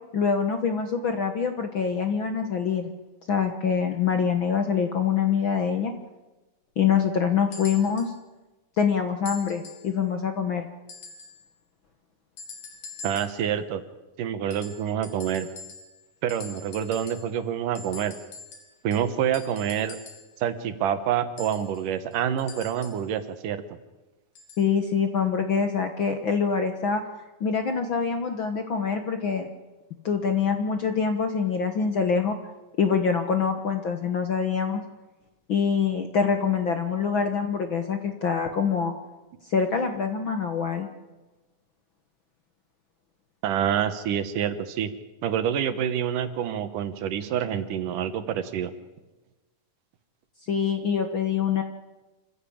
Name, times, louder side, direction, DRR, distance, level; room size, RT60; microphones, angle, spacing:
voice 1, 0.1-2.9 3.3-5.9 6.8-8.1 8.8-10.7 24.6-27.0 27.4-29.5 30.0-32.3 32.8-34.8 35.5-38.9 39.5-40.9 50.5-51.6, left 6 dB, 55° left, 6 dB, 1.4 m, -25 dB
sound 1, 7.5-8.2 9.3-9.9 10.9-11.4 12.4-13.5 14.5-16.0 16.3-17.4 17.8-20.3 21.4-23.1 24.4-24.7 25.6-25.7, left 4 dB, 85° left, 4.9 m, -44 dB
voice 2, 13.0-13.8 14.2-15.5 16.2-18.1 18.8-20.0 20.4-23.6 43.4-44.9 45.2-48.7, right 9 dB, 75° right, 11 dB, 2.8 m, -27 dB
27.0 x 15.5 x 8.6 m, 1.1 s
omnidirectional pair, 3.8 m